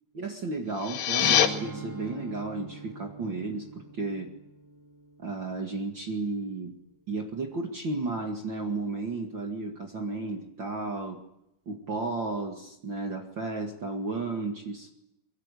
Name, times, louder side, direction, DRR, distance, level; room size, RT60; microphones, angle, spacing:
voice 1, 0.1-4.3 5.2-6.7 7.1-11.2 11.6-14.9, right 3 dB, 70° right, 2 dB, 1.1 m, -33 dB
sound 1, 0.7-1.5, left 10 dB, 65° left, 3.3 m, -23 dB
Strum, 1.2-6.5, right 4 dB, 5° right, 1.6 m, -42 dB
24.0 x 24.0 x 8.5 m, 0.84 s
omnidirectional pair, 5.9 m